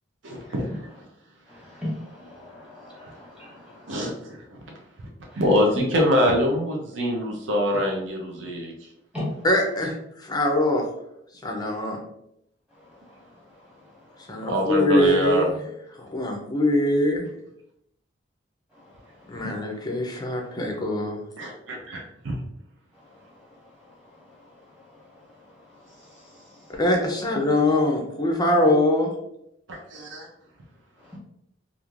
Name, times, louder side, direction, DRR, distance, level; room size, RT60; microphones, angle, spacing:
voice 1, 0.2-0.7 3.9-4.4 5.3-8.7 14.5-15.5 21.4-22.4 29.7-30.3, equal, 65° right, 0 dB, 0.6 m, -24 dB
voice 2, 1.6-4.1 9.1-9.3, left 1 dB, 5° right, -6 dB, 1.0 m, -36 dB
voice 3, 9.4-10.8 11.4-12.0 14.3-15.6 16.0-17.3 19.3-21.2 26.8-29.1, left 1 dB, 20° left, 1 dB, 0.4 m, -23 dB
3.1 x 2.4 x 2.4 m, 0.77 s
head